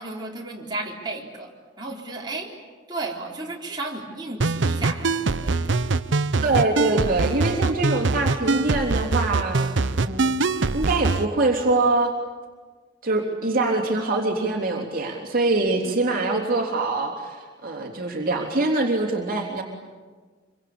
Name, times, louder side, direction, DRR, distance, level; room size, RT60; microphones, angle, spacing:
voice 1, 0.0-1.5 1.8-2.6 2.9-5.8 15.8-16.2, right 2 dB, 25° right, -3 dB, 3.9 m, -34 dB
sound 1, 4.4-11.2, right 3 dB, 75° right, 0.8 m, -23 dB
voice 2, 6.4-10.3 10.7-12.1 13.0-19.6, right 2 dB, 50° right, 0 dB, 3.4 m, -24 dB
26.5 x 25.0 x 8.7 m, 1.4 s
head